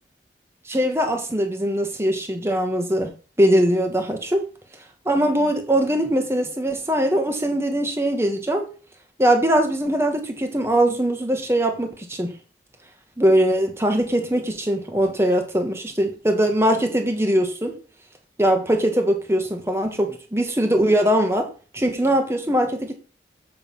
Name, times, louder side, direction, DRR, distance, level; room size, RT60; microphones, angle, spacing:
voice 1, 0.7-3.1 3.4-4.4 5.0-8.7 9.2-12.3 13.2-17.8 18.4-21.5 21.7-22.9, right 1 dB, 15° right, 1.4 m, -21 dB
7.5 x 6.8 x 5.7 m
head